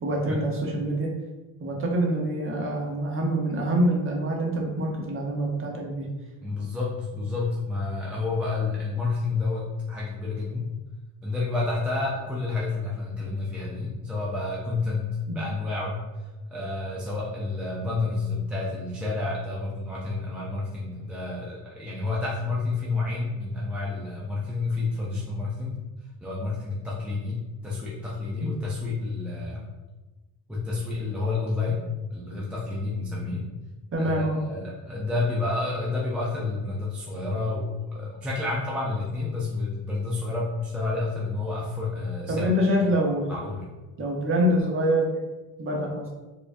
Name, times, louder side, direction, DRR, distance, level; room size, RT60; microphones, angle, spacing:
voice 1, 0.0-1.1 1.6-6.1 15.3-15.5 28.4-28.7 33.9-34.4 42.3-43.3 44.0-45.2 45.6-46.1, equal, 25° right, -1 dB, 0.8 m, -25 dB
voice 2, 6.4-10.7 11.2-15.1 15.3-16.0 16.5-25.8 26.2-27.4 27.6-29.7 30.5-31.8 32.1-33.4 34.0-42.5 43.3-43.6, left 3 dB, 5° right, -6 dB, 0.3 m, -29 dB
4.5 x 2.4 x 2.5 m, 1.2 s
supercardioid pair, 105°, 48 cm